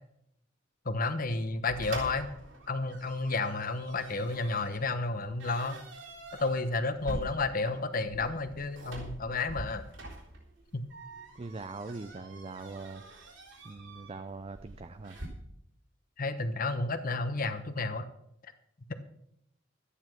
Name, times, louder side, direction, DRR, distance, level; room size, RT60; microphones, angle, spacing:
voice 1, 0.8-2.3 2.7-5.8 6.4-9.8 10.7-10.8 16.2-18.0, left 3 dB, 45° left, 10 dB, 1.0 m, -31 dB
sound 1, 1.7-15.3, right 2 dB, 80° right, 3.8 m, -46 dB
voice 2, 11.4-13.0 13.6-15.2, right 3 dB, 30° right, 9 dB, 0.5 m, -42 dB
12.5 x 10.0 x 6.1 m, 0.76 s
head